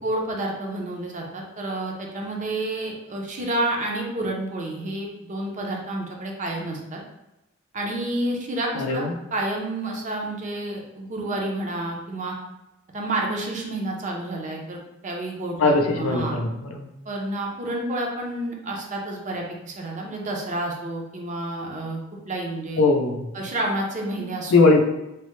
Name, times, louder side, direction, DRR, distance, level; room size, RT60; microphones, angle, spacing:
voice 1, 0.0-7.0 7.7-12.4 12.9-16.4 17.1-22.0 22.3-22.8 23.3-24.6, right 1 dB, 35° right, 0 dB, 0.5 m, -29 dB
voice 2, 8.8-9.1 15.6-16.9 22.8-23.3 24.5-24.8, left 3 dB, 90° left, 3 dB, 0.5 m, -20 dB
3.3 x 2.1 x 3.0 m, 0.89 s
head